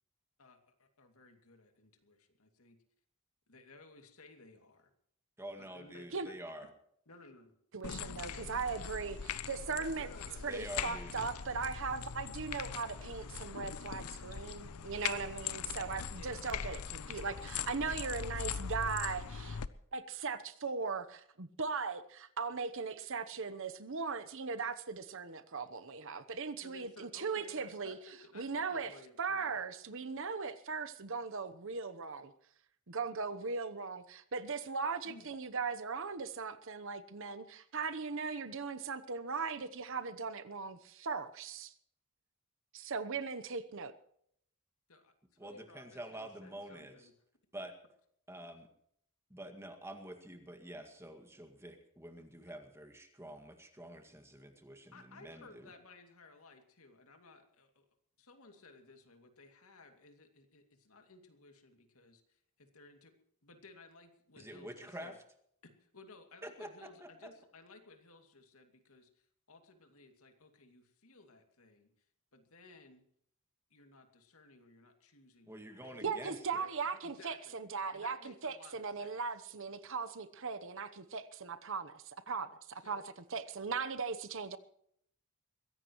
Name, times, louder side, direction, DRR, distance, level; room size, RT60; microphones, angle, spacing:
voice 1, 0.4-2.8 3.5-4.9 5.6-6.3 7.1-7.5 9.7-10.8 11.4-11.5 16.1-16.6 26.6-29.6 35.0-35.3 44.9-47.1 54.9-57.9 58.2-63.1 63.4-65.2 65.6-71.9 72.3-73.0 73.7-75.5 75.8-76.7 77.0-77.5 77.9-79.1 82.8-83.1, left 3 dB, 70° left, 2.5 m, -58 dB
voice 2, 5.4-6.7 10.5-11.1 45.4-46.9 47.5-47.7 48.3-48.7 49.3-55.7 64.4-65.1 66.4-67.3 75.5-76.7, right 1 dB, 10° right, 2.0 m, -47 dB
voice 3, 7.7-9.2 9.5-10.1 10.4-19.6 19.9-28.0 28.3-32.3 32.9-41.7 42.7-43.9 76.0-83.0 83.3-84.6, right 5 dB, 60° right, 0.9 m, -39 dB
sound 1, 7.8-19.7, left 7 dB, 90° left, 0.7 m, -41 dB
22.5 x 16.0 x 3.1 m
head